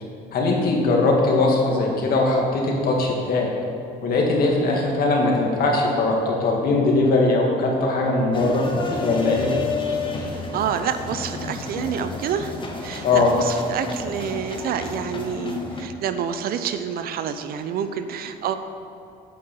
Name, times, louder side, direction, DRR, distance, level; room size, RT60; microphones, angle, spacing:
voice 1, 0.3-3.5 4.0-8.6 8.9-9.6 10.1-10.3 13.0-13.3, left 3 dB, 60° left, -1 dB, 2.0 m, -20 dB
sound 1, 8.3-15.8, left 3 dB, 30° left, 1.2 m, -31 dB
voice 2, 10.5-12.6 12.8-18.5, right 8 dB, 65° right, 9 dB, 0.6 m, -28 dB
8.5 x 5.6 x 6.8 m, 2.7 s
cardioid pair, 110°, 17 cm